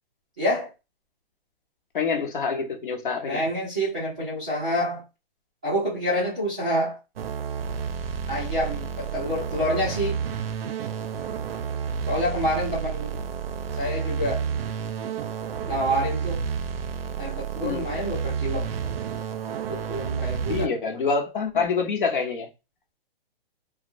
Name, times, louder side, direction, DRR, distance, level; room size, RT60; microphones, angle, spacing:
voice 1, 0.4-0.7 3.3-5.0 5.6-7.0 8.3-10.2 12.1-13.2 13.8-14.5 15.7-16.5 17.2-18.7 19.7-20.8, equal, 10° right, -11 dB, 0.5 m, -27 dB
voice 2, 1.9-3.4 17.6-17.8 20.5-22.5, left 5 dB, 55° left, 3 dB, 0.9 m, -26 dB
sound 1, 7.2-20.7, right 7 dB, 70° right, 0.5 m, -30 dB
3.0 x 2.1 x 2.5 m, 0.27 s
hypercardioid pair, 175°, 30 cm